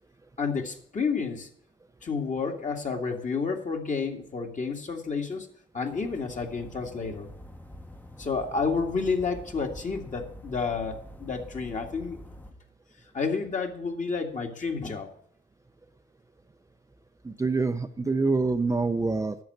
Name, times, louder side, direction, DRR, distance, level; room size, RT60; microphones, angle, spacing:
voice 1, 0.4-1.5 2.0-5.5 5.7-7.3 8.2-12.2 13.1-15.1, left 4 dB, 40° left, 3 dB, 2.1 m, -30 dB
sound 1, 5.9-12.5, equal, 10° left, 1.0 m, -46 dB
voice 2, 17.2-19.4, right 3 dB, 15° right, 7 dB, 0.6 m, -26 dB
10.5 x 7.0 x 7.8 m, 0.63 s
cardioid pair, 90°, 20 cm